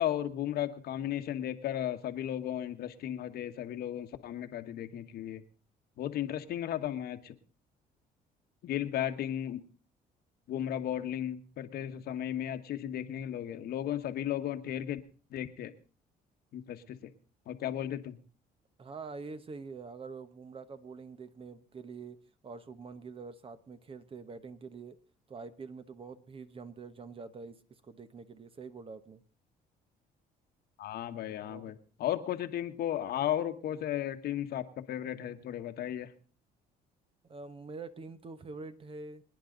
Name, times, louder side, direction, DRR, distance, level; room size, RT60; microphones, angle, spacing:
voice 1, 0.0-5.4 6.0-7.3 8.6-9.6 10.5-15.0 15.3-15.7 16.5-17.1 17.5-18.2 30.8-31.7 32.0-36.1, left 11 dB, 65° left, 9 dB, 1.3 m, -35 dB
voice 2, 18.8-22.2 22.4-25.0 25.3-29.2 31.4-31.8 37.2-39.2, right 4 dB, 35° right, 11 dB, 1.2 m, -45 dB
25.0 x 10.0 x 3.9 m, 0.38 s
cardioid pair, 110°, 17 cm